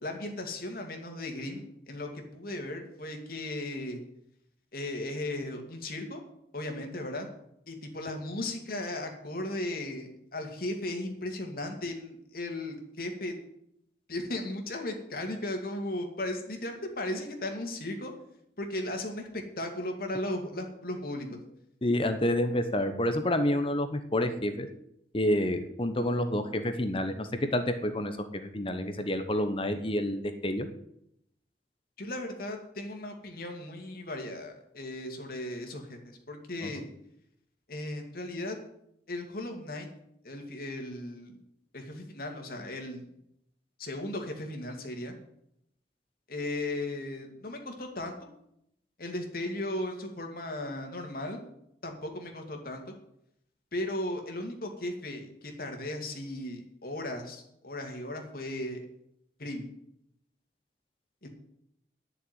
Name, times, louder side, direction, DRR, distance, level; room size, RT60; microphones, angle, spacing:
voice 1, 0.0-4.0 4.7-6.2 6.5-7.3 7.7-13.3 14.1-18.1 18.6-21.4 32.0-36.0 36.3-36.8 37.7-38.6 39.1-39.9 40.2-41.4 41.7-43.2 43.8-45.1 46.3-48.1 49.0-51.4 51.8-52.9 53.7-58.8 59.4-59.6 61.2-61.3, left 1 dB, 55° left, 3 dB, 2.5 m, -36 dB
voice 2, 21.8-24.7 25.1-30.7 36.6-36.7, left 1 dB, 30° left, 8 dB, 1.0 m, -29 dB
11.0 x 6.8 x 9.4 m, 0.77 s
head